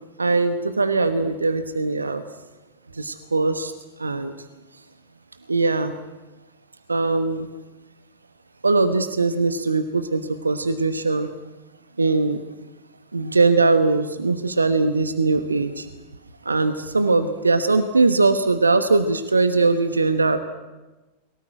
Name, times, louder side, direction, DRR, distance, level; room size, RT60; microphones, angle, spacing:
voice 1, 0.2-2.2 2.9-3.7 4.0-4.3 5.5-5.9 6.9-7.5 8.6-11.3 12.0-12.4 13.1-15.9 16.4-20.4, right 3 dB, 80° right, 11 dB, 1.2 m, -21 dB
23.0 x 17.5 x 9.0 m, 1.2 s
figure-of-eight pair, 90°, 0 cm